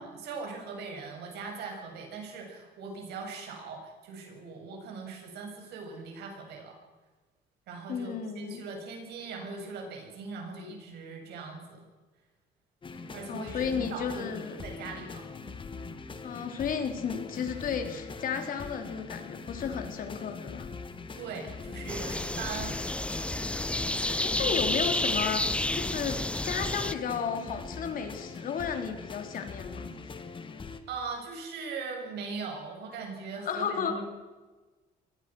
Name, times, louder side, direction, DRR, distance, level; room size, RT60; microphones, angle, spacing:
voice 1, 0.0-6.8 7.7-11.8 13.1-15.2 21.2-22.8 30.9-34.0, right 4 dB, 75° right, 2 dB, 7.4 m, -40 dB
voice 2, 7.9-8.6 13.3-14.6 16.2-20.7 23.9-29.9 33.5-34.0, left 7 dB, 55° left, 5 dB, 3.6 m, -33 dB
sound 1, 12.8-30.8, left 4 dB, 30° left, 2.2 m, -42 dB
sound 2, 21.9-26.9, left 1 dB, 5° left, 0.7 m, -30 dB
24.0 x 19.5 x 6.3 m, 1.3 s
cardioid pair, 110°, 17 cm